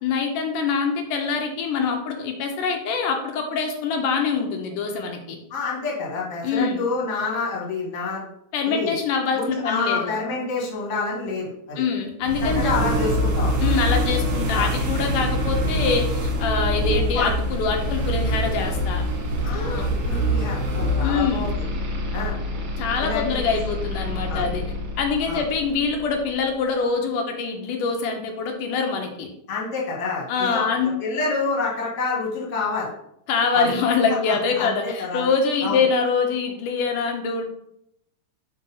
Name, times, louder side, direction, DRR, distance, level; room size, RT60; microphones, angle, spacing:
voice 1, 0.0-5.4 6.4-6.8 8.5-10.2 11.8-12.7 13.6-19.0 19.5-19.8 20.1-20.2 21.0-21.5 22.8-24.6 25.0-29.3 30.3-30.9 33.3-37.5, left 5 dB, 80° left, 3 dB, 2.3 m, -24 dB
voice 2, 5.5-8.3 8.7-8.9 9.3-11.8 12.4-14.0 14.5-14.7 16.9-17.3 19.4-21.6 22.1-22.4 23.0-23.6 24.3-24.5 25.3-25.4 29.5-30.7 31.0-32.9 33.5-33.8 34.2-35.2 35.6-35.8, left 4 dB, 35° left, -4 dB, 1.4 m, -28 dB
sound 1, 12.2-26.1, equal, 60° right, 2.0 m, -25 dB
5.4 x 3.3 x 5.4 m, 0.76 s
omnidirectional pair, 3.7 m